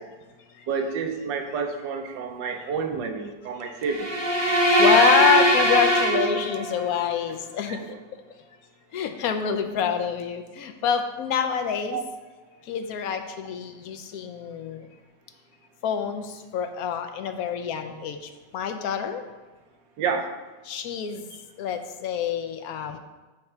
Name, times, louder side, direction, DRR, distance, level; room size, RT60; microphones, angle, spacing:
voice 1, 0.7-4.1 7.7-7.8 11.9-12.0 20.0-20.3, right 5 dB, 80° right, 5 dB, 1.4 m, -29 dB
sound 1, 3.9-6.9, equal, 25° right, 0.6 m, -20 dB
voice 2, 4.6-7.8 8.9-12.0 12.6-14.9 15.8-19.2 20.7-21.3 21.6-23.0, left 8 dB, 65° left, 7 dB, 1.0 m, -27 dB
8.1 x 3.2 x 5.8 m, 1.2 s
omnidirectional pair, 1.9 m